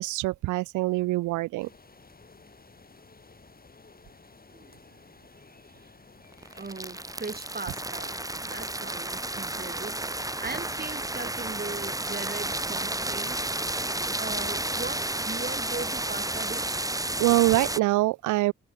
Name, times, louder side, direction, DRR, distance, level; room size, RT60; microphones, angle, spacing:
voice 1, 0.0-1.7 17.2-18.5, right 19 dB, 80° right, 0.5 m, -24 dB
sound 1, 1.6-8.5, left 4 dB, 30° left, 2.6 m, -54 dB
sound 2, 6.3-17.8, right 1 dB, 10° right, 1.8 m, -32 dB
voice 2, 6.4-10.1 10.4-13.4 14.1-16.8, right 3 dB, 30° right, 4.1 m, -39 dB
supercardioid pair, 50°, 30 cm